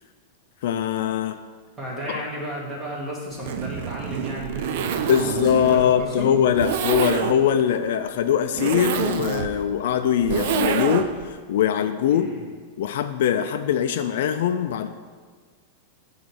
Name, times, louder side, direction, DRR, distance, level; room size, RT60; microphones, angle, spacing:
voice 1, 0.6-1.4 2.1-2.2 5.0-12.3 12.8-14.9, left 9 dB, 65° left, 9 dB, 0.4 m, -22 dB
voice 2, 1.8-6.3 12.1-12.4, right 1 dB, 15° right, -4 dB, 1.6 m, -33 dB
Zipper (clothing), 3.3-11.3, right 8 dB, 55° right, 0.5 m, -27 dB
8.6 x 3.1 x 6.3 m, 1.5 s
supercardioid pair, 160°, 0 cm